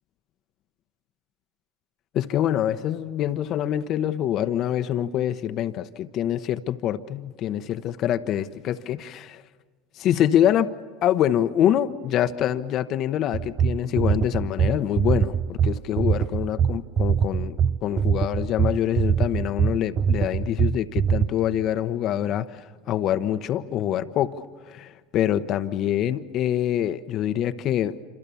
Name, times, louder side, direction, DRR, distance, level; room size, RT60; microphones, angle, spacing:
voice 1, 2.1-9.4 9.9-10.7 11.0-28.0, left 11 dB, 50° left, 0.9 m, -25 dB
sound 1, 13.3-21.3, right 7 dB, 40° right, 0.7 m, -22 dB
27.5 x 26.5 x 7.1 m
hypercardioid pair, 85°, 0 cm